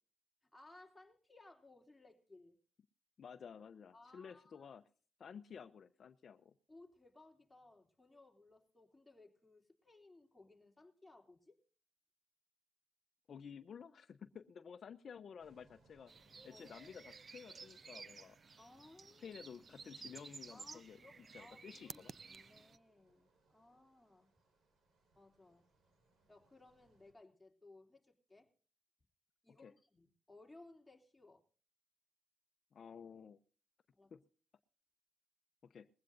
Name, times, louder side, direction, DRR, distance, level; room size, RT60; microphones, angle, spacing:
voice 1, 0.5-2.6 3.9-4.8 6.7-11.6 16.5-16.8 18.6-19.3 20.5-22.0 22.3-24.4 25.1-25.7 26.3-28.5 29.4-31.4 33.9-34.1, left 2 dB, 10° left, 0 dB, 3.1 m, -62 dB
voice 2, 3.2-4.8 5.2-6.5 13.3-16.1 16.4-18.4 19.2-22.1 29.6-29.7 32.7-33.4 34.1-34.2 35.6-35.9, left 7 dB, 55° left, 10 dB, 0.7 m, -53 dB
sound 1, 15.4-27.1, right 2 dB, 65° right, 4.6 m, -75 dB
sound 2, 16.1-22.8, right 5 dB, 40° right, 0.6 m, -54 dB
20.5 x 15.5 x 2.6 m, 0.41 s
cardioid pair, 85°, 0 cm